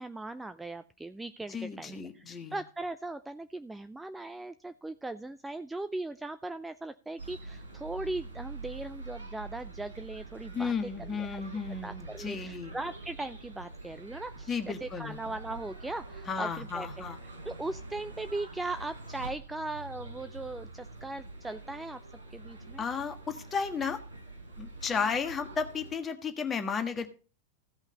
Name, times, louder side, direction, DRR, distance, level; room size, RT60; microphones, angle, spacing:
voice 1, 0.0-10.7 11.0-11.4 11.8-22.0 22.3-22.8, right 2 dB, 5° right, 11 dB, 0.5 m, -39 dB
voice 2, 1.5-2.6 10.5-12.7 14.5-15.2 16.3-17.2 22.8-24.0 24.6-27.1, left 5 dB, 20° left, 7 dB, 1.5 m, -33 dB
sound 1, 7.2-25.9, right 3 dB, 75° right, 4.6 m, -45 dB
15.0 x 5.6 x 5.4 m, 0.37 s
figure-of-eight pair, 90°, 0 cm